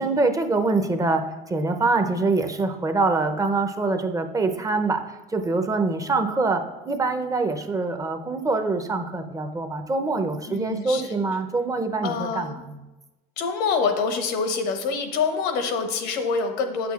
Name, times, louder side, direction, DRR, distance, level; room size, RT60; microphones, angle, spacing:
voice 1, 0.0-5.0 5.3-12.8, right 3 dB, 20° right, 6 dB, 0.6 m, -24 dB
voice 2, 10.5-11.1 12.0-12.6 13.4-16.9, left 5 dB, 80° left, 6 dB, 0.9 m, -26 dB
7.9 x 6.1 x 2.4 m, 1.1 s
supercardioid pair, 95°, 17 cm